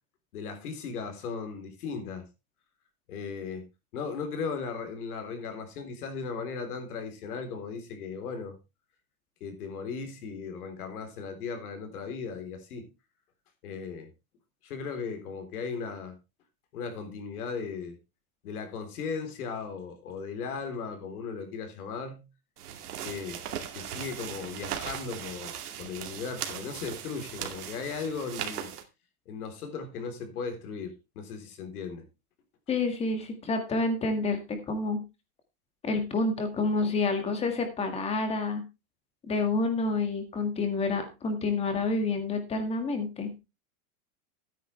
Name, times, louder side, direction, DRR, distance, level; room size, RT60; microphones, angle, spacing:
voice 1, 0.3-2.3 3.1-3.7 3.9-8.6 9.4-12.9 13.6-14.1 14.6-16.2 16.7-18.0 18.4-22.3 23.0-23.4 23.7-28.7 29.3-32.1, left 5 dB, 75° left, 3.8 m, -37 dB
sound 1, 22.6-28.8, right 9 dB, 90° right, 2.4 m, -38 dB
voice 2, 32.7-35.0 35.8-38.6 39.3-43.4, left 3 dB, 15° left, 1.8 m, -28 dB
13.0 x 9.4 x 3.3 m
supercardioid pair, 165°, 45 cm